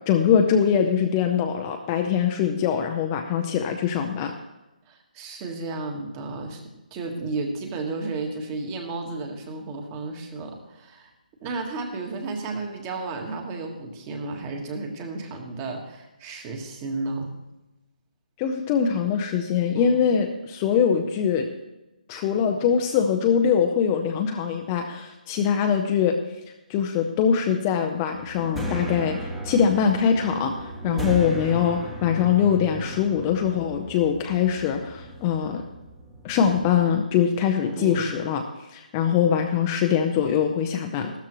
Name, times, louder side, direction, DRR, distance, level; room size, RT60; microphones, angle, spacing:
voice 1, 0.1-4.3 18.4-21.5 22.1-26.2 26.7-35.6 36.2-38.4 38.7-41.1, left 7 dB, 20° left, 4 dB, 0.6 m, -23 dB
voice 2, 4.9-6.6 6.9-11.1 11.4-17.3 19.7-20.0 30.8-31.1 37.6-38.2, right 3 dB, 20° right, 4 dB, 1.4 m, -33 dB
sound 1, 28.1-36.8, right 1 dB, 5° right, 1.0 m, -36 dB
14.5 x 13.0 x 3.1 m, 1.0 s
hypercardioid pair, 165°, 5 cm